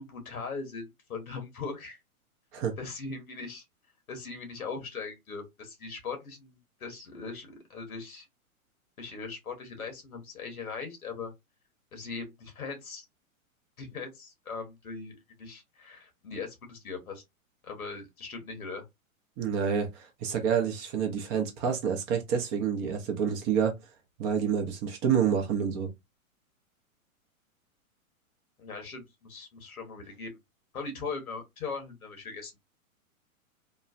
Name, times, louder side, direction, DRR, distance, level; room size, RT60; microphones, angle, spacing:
voice 1, 0.0-2.0 2.8-3.6 4.1-8.3 9.0-11.3 11.9-13.1 13.8-17.2 17.6-18.8 28.6-30.4 30.7-32.6, left 4 dB, 90° left, 1.2 m, -40 dB
voice 2, 19.4-23.7 24.2-25.9, right 7 dB, 25° right, 0.5 m, -28 dB
3.0 x 2.0 x 2.4 m
hypercardioid pair, 120°, 42 cm